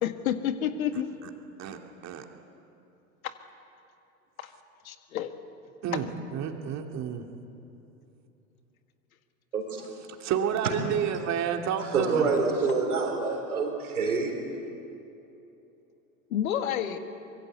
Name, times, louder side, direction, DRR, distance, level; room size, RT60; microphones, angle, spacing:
voice 1, 0.0-1.1 3.2-3.3 4.4-4.5 4.8-5.3 16.3-17.0, left 10 dB, 70° left, 8 dB, 1.8 m, -29 dB
voice 2, 5.8-7.3 10.2-12.3, right 8 dB, 40° right, 4 dB, 2.6 m, -30 dB
voice 3, 9.5-9.9 10.6-10.7 11.9-14.4, right 4 dB, 80° right, 3 dB, 4.2 m, -27 dB
24.5 x 22.5 x 8.1 m, 2.9 s
figure-of-eight pair, 85°, 43 cm